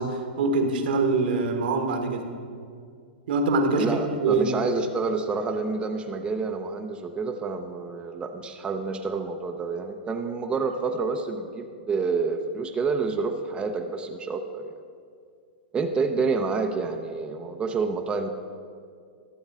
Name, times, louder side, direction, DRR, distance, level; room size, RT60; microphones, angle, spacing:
voice 1, 0.0-2.3 3.3-4.5, right 3 dB, 70° right, 5 dB, 1.4 m, -24 dB
voice 2, 3.8-14.7 15.7-18.3, right 4 dB, 20° right, 4 dB, 0.6 m, -28 dB
12.0 x 7.1 x 5.4 m, 2.3 s
hypercardioid pair, 120°, 5 cm